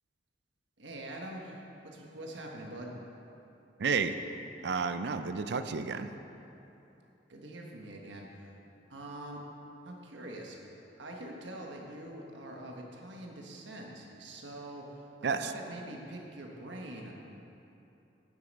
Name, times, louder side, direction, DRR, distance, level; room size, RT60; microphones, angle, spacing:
voice 1, 0.8-2.9 7.3-8.6 8.9-9.4 9.8-10.6 11.0-17.1, right 1 dB, 80° right, 0 dB, 1.4 m, -44 dB
voice 2, 3.8-4.1 4.6-6.1 15.2-15.5, right 5 dB, 65° right, 10 dB, 0.5 m, -31 dB
9.5 x 7.8 x 5.4 m, 2.9 s
head